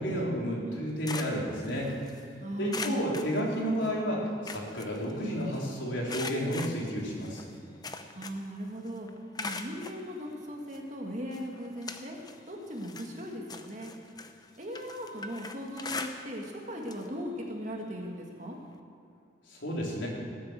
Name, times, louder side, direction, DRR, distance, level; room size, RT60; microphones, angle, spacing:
voice 1, 0.0-1.9 2.6-7.4 19.6-20.1, equal, 80° left, -3 dB, 3.8 m, -31 dB
sound 1, 0.7-2.2 2.7-4.0 4.3-5.6 6.1-8.6 8.9-10.0 10.7-10.8 11.3-12.4 12.7-16.6 16.8-17.1 17.4-17.5 18.7-18.8, left 3 dB, 20° left, 0.7 m, -41 dB
voice 2, 2.4-3.2 8.2-9.1 9.4-12.2 12.5-13.9 14.6-18.6, equal, 40° right, 0 dB, 2.1 m, -38 dB
18.5 x 8.5 x 7.7 m, 2.6 s
head